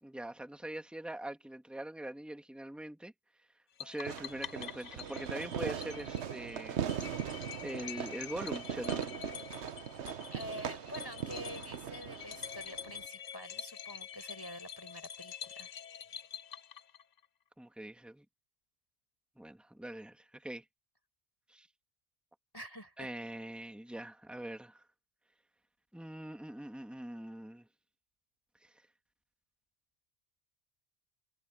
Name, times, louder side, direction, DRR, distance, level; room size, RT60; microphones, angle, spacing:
voice 1, 0.0-3.1 3.8-6.8 7.6-9.0 17.6-18.2 19.4-20.6 21.5-21.7 23.0-24.8 25.9-27.7, right 1 dB, ahead, 1.7 m, -43 dB
sound 1, 3.8-17.2, left 8 dB, 45° left, 0.6 m, -47 dB
Fireworks, 4.0-13.1, right 8 dB, 80° right, 1.1 m, -40 dB
voice 2, 10.3-15.7 22.5-23.1, equal, 20° left, 5.7 m, -47 dB
omnidirectional pair, 1.2 m